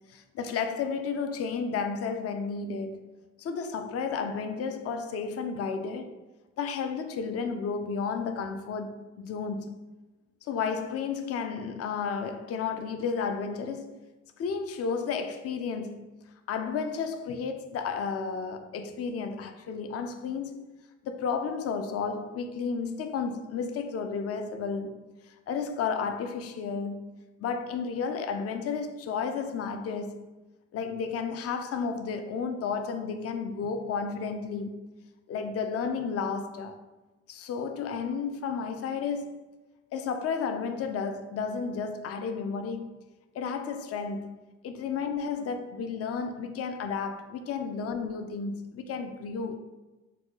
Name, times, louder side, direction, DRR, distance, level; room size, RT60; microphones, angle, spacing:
voice 1, 0.1-3.0 3.4-6.2 6.6-9.8 10.4-14.0 14.4-16.1 16.5-20.7 21.0-24.9 25.3-27.1 27.4-30.3 30.7-34.9 35.3-36.8 37.3-39.4 39.9-42.9 43.3-49.6, left 5 dB, 50° left, 0.4 m, -32 dB
3.9 x 2.2 x 2.9 m
cardioid pair, 90°, 30 cm